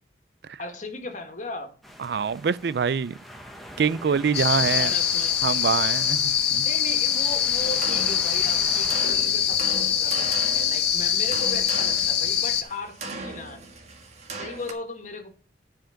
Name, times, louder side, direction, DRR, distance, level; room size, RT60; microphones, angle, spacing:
voice 1, 0.6-1.7 4.7-5.4 6.6-13.6 14.3-15.3, left 2 dB, 45° left, 1.9 m, -37 dB
sound 1, 1.8-9.1, equal, ahead, 1.2 m, -43 dB
voice 2, 2.0-3.2 3.8-4.9 5.4-6.7, right 6 dB, 65° right, 0.4 m, -25 dB
sound 2, 4.3-12.6, left 9 dB, 65° left, 1.6 m, -23 dB
sound 3, 7.6-14.7, right 3 dB, 40° right, 1.6 m, -39 dB
10.5 x 5.1 x 5.7 m
head